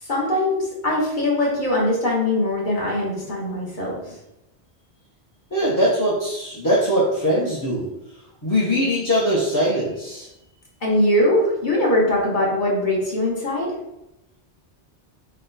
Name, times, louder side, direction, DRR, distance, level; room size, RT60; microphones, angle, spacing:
voice 1, 0.0-4.1 10.8-13.8, left 1 dB, 45° left, -4 dB, 1.3 m, -21 dB
voice 2, 5.5-7.9 8.4-10.3, equal, 20° left, -7 dB, 0.7 m, -21 dB
4.2 x 2.2 x 3.9 m, 0.87 s
omnidirectional pair, 1.1 m